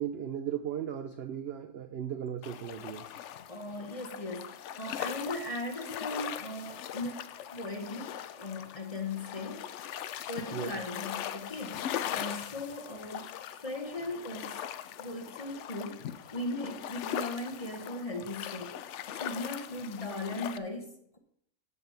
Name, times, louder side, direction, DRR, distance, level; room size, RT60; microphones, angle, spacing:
voice 1, 0.0-3.1 10.5-10.7, right 9 dB, 70° right, 0.5 m, -36 dB
sound 1, 2.4-20.6, left 10 dB, 70° left, 0.7 m, -40 dB
voice 2, 3.5-7.2 7.5-9.7 10.3-14.6 15.0-16.0 16.3-18.8 19.1-21.2, left 2 dB, 25° left, 0.9 m, -38 dB
8.7 x 5.2 x 6.9 m
omnidirectional pair, 1.6 m